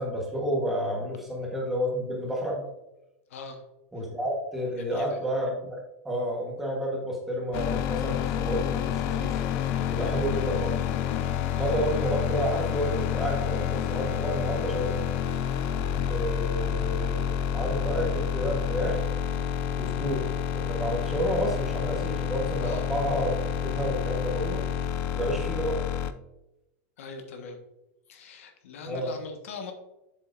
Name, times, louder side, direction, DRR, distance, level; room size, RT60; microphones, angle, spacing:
voice 1, 0.0-2.6 3.9-9.4 9.9-10.8 11.6-15.0 16.1-17.3 17.5-19.0 19.8-23.3 23.6-24.6 25.1-25.8 28.9-29.1, equal, 5° right, -2 dB, 1.2 m, -30 dB
voice 2, 3.3-3.6 4.8-5.2 11.5-11.7 22.6-22.9 27.0-27.6 28.1-29.7, left 4 dB, 75° left, 5 dB, 1.3 m, -41 dB
sound 1, 7.5-26.1, left 9 dB, 30° left, 0.4 m, -29 dB
7.6 x 7.5 x 2.5 m, 0.92 s
supercardioid pair, 175°, 7 cm